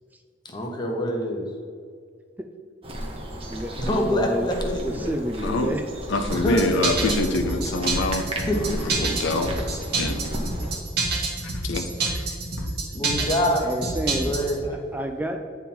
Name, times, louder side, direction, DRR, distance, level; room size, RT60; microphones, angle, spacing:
voice 1, 0.4-1.5 3.8-5.1 6.4-6.7 8.5-8.7 9.0-9.4 12.9-13.9 14.2-14.8, equal, 25° left, 1 dB, 1.0 m, -26 dB
sound 1, 2.8-10.8, right 1 dB, 30° right, 0.9 m, -34 dB
voice 2, 3.5-4.5 4.8-5.8 13.6-14.3 14.9-15.4, right 1 dB, 10° right, 4 dB, 0.3 m, -29 dB
voice 3, 5.4-5.7 6.1-8.3 8.5-9.5 10.0-10.3 11.4-12.2 12.6-12.7, left 2 dB, 75° left, 6 dB, 0.6 m, -26 dB
sound 2, 6.3-14.6, right 3 dB, 60° right, 1.3 m, -27 dB
8.9 x 3.6 x 4.4 m, 2.2 s
head